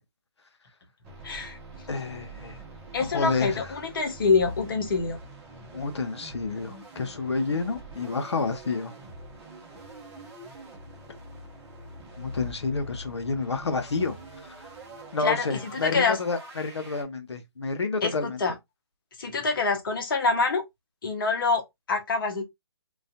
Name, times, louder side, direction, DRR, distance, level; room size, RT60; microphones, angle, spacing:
sound 1, 1.0-17.0, right 1 dB, 20° right, 0.8 m, -44 dB
voice 1, 1.2-1.6 2.9-5.2 15.2-16.2 18.0-18.5 19.2-20.6 21.0-22.4, left 4 dB, 50° left, 0.9 m, -26 dB
voice 2, 1.9-2.6 3.0-3.8 5.7-8.9 12.2-14.2 14.4-14.5 15.1-18.4, left 4 dB, 80° left, 0.7 m, -29 dB
2.5 x 2.4 x 2.4 m
figure-of-eight pair, 145°, 14 cm